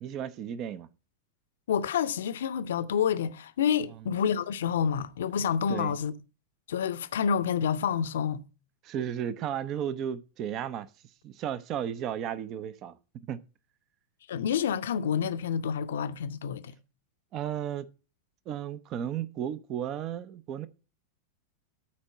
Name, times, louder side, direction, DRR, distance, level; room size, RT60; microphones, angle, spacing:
voice 1, 0.0-0.9 5.7-6.0 8.8-10.9 11.2-13.4 17.3-17.9 18.5-20.7, right 9 dB, 35° right, 0.6 m, -34 dB
voice 2, 1.7-6.1 6.7-8.4 14.3-16.8, left 7 dB, 60° left, 0.6 m, -28 dB
13.0 x 4.4 x 5.8 m
figure-of-eight pair, 90°, 0 cm